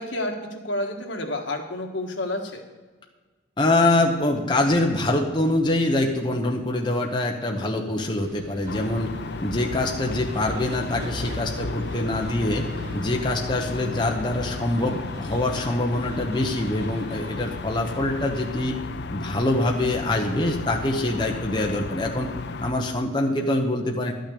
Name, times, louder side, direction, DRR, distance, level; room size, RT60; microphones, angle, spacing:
voice 1, 0.0-2.6, left 1 dB, 75° left, 3 dB, 1.5 m, -30 dB
voice 2, 3.6-9.1 9.4-12.7 12.9-18.8 19.1-22.3 22.6-24.1, left 1 dB, 25° left, 0 dB, 1.0 m, -24 dB
sound 1, 8.1-18.7, right 2 dB, 60° right, 1.0 m, -43 dB
sound 2, 8.7-22.7, left 4 dB, 60° left, 0.4 m, -34 dB
12.0 x 6.4 x 8.4 m, 1.3 s
head